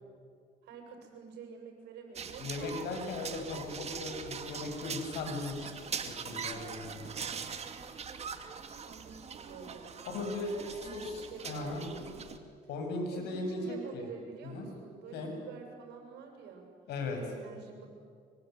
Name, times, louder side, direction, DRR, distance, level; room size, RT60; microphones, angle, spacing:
voice 1, 0.6-3.0 8.8-12.3 13.1-16.7 17.1-17.9, right 5 dB, 85° right, 3 dB, 7.8 m, -48 dB
sound 1, 2.2-12.4, right 6 dB, 40° right, 2.3 m, -42 dB
voice 2, 2.4-5.7 6.0-7.1 10.1-11.9 12.7-14.0 14.4-14.7 15.1-15.3 16.9-17.2, left 3 dB, 80° left, 3 dB, 7.7 m, -38 dB
25.5 x 24.5 x 9.6 m, 2.1 s
cardioid pair, 110°, 17 cm